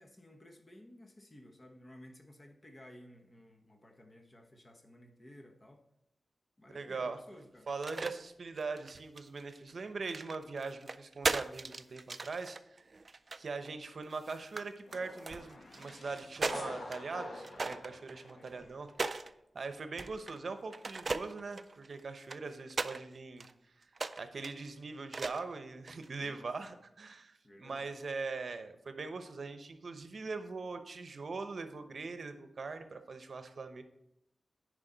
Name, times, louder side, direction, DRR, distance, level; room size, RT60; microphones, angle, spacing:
voice 1, 0.0-5.8 6.6-7.7 18.4-18.8 26.1-26.7 27.4-27.9, left 1 dB, 30° left, 4 dB, 1.0 m, -56 dB
voice 2, 6.7-7.2 7.7-12.8 13.4-19.3 19.5-23.5 23.8-23.9 24.2-33.8, right 4 dB, 65° right, 9 dB, 0.7 m, -41 dB
sound 1, 7.7-8.1 8.6-9.6 10.1-13.7 14.1-14.6 14.9-17.0 17.4-19.3 20.0-20.4 20.7-23.0 23.4-23.5 23.9-24.5 25.1-25.5 25.9-26.2, right 3 dB, 45° right, 0.3 m, -38 dB
sound 2, 14.9-18.9, left 2 dB, 60° left, 1.3 m, -47 dB
9.9 x 4.9 x 3.9 m, 0.81 s
wide cardioid pair, 100°, 0 cm